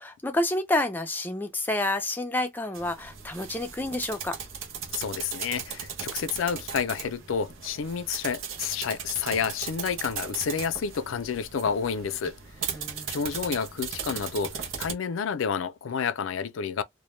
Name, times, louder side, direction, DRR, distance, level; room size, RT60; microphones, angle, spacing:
voice 1, 0.0-4.4 12.7-13.2, left 2 dB, 10° left, 0.4 m, -29 dB
sound 1, 2.7-14.9, right 7 dB, 85° right, 0.6 m, -37 dB
voice 2, 4.9-12.4 12.6-12.7 13.1-16.8, left 6 dB, 85° left, 0.4 m, -30 dB
2.1 x 2.1 x 3.0 m
head